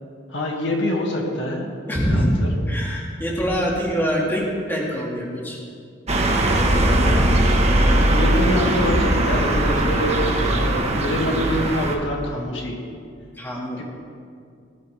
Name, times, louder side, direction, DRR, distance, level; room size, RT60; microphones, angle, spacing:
voice 1, 0.3-2.5 6.9-7.4 8.1-12.8 13.8-13.9, left 1 dB, 80° left, -1 dB, 2.2 m, -26 dB
voice 2, 1.9-5.6 13.4-13.8, equal, 10° left, -3 dB, 2.1 m, -24 dB
sound 1, 6.1-12.0, right 1 dB, 35° right, 1.4 m, -19 dB
18.0 x 12.5 x 3.5 m, 2.3 s
head